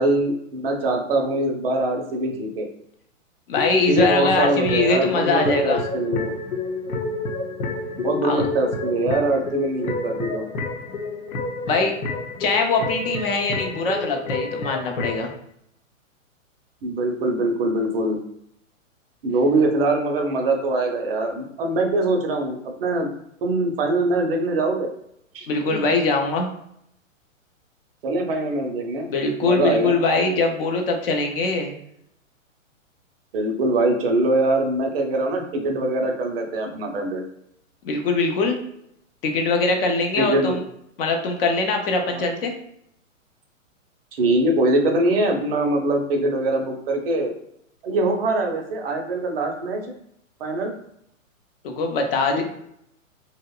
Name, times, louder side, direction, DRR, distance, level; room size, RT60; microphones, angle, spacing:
voice 1, 0.0-2.7 3.9-6.3 8.0-10.4 16.8-18.2 19.2-23.1 23.4-24.9 25.3-25.8 28.0-29.1 29.4-30.0 33.3-37.2 40.2-40.6 42.1-42.2 44.2-47.3 47.8-49.9 50.4-50.7 52.3-52.4, right 2 dB, 45° right, 3 dB, 0.5 m, -23 dB
sound 1, 3.5-15.3, left 3 dB, 85° left, 0.7 m, -29 dB
voice 2, 3.5-5.8 8.2-8.4 11.6-11.9 12.4-15.3 25.5-26.5 29.1-31.8 37.8-38.6 39.2-40.6 41.0-42.5 51.6-52.4, left 3 dB, 45° left, 3 dB, 0.5 m, -22 dB
2.8 x 2.0 x 2.2 m, 0.74 s
hypercardioid pair, 135°, 40 cm